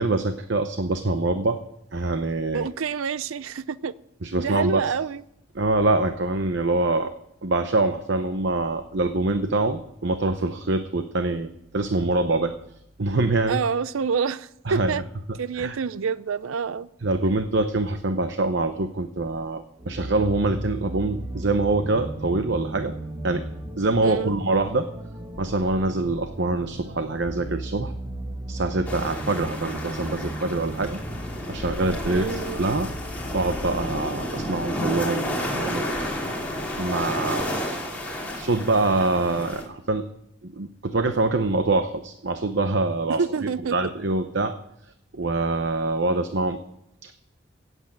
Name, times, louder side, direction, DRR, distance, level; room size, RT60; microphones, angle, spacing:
voice 1, 0.0-1.6 1.9-2.7 4.2-4.9 5.5-7.1 7.4-12.5 13.0-13.6 14.7-15.0 15.5-15.8 17.0-22.9 23.2-23.5 23.8-24.9 25.4-27.9 28.5-31.0 31.5-32.9 33.3-36.0 36.8-37.5 38.0-40.1 40.4-43.2 43.7-44.5 45.1-46.6 47.0-47.1, right 2 dB, 60° right, 0.8 m, -25 dB
voice 2, 2.5-3.9 4.4-5.2 13.5-15.0 15.4-16.9 24.0-24.4 32.1-32.6 43.2-43.8, right 5 dB, 90° right, 0.5 m, -27 dB
sound 1, 19.8-34.5, right 1 dB, 15° right, 1.4 m, -36 dB
sound 2, 28.8-39.6, equal, 5° left, 3.0 m, -31 dB
16.5 x 8.1 x 7.5 m
head